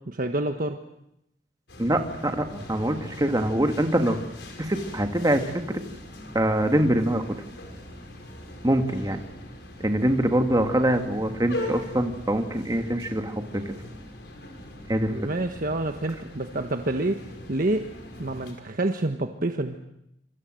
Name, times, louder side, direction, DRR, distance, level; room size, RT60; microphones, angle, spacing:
voice 1, 0.1-0.8 15.1-17.2 17.5-17.8 18.2-19.8, right 2 dB, 50° right, 6 dB, 1.4 m, -27 dB
sound 1, 1.7-18.5, left 1 dB, 70° left, 5.8 m, -41 dB
voice 2, 1.8-4.2 4.6-5.8 6.3-7.2 8.6-9.2 9.8-13.7 14.9-15.1, right 1 dB, 20° right, 5 dB, 2.1 m, -24 dB
27.0 x 27.0 x 7.8 m, 0.81 s
head